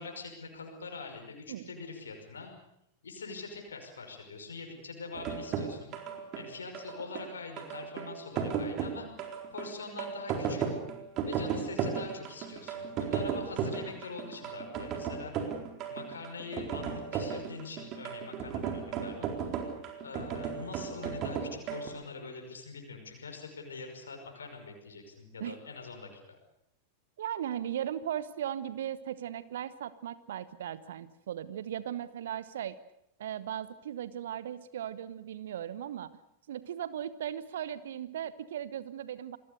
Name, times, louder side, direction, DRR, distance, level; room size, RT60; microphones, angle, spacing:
voice 1, 0.0-2.5 3.0-6.0 6.3-9.1 9.5-10.6 11.3-15.3 15.9-19.3 20.0-26.4, left 4 dB, 70° left, 3 dB, 5.5 m, -43 dB
sound 1, 5.1-21.9, right 7 dB, 35° right, 4.2 m, -35 dB
voice 2, 27.2-32.8 33.2-36.1 36.5-39.4, right 10 dB, 60° right, 16 dB, 1.1 m, -37 dB
28.0 x 21.5 x 6.8 m, 0.78 s
figure-of-eight pair, 90°, 0 cm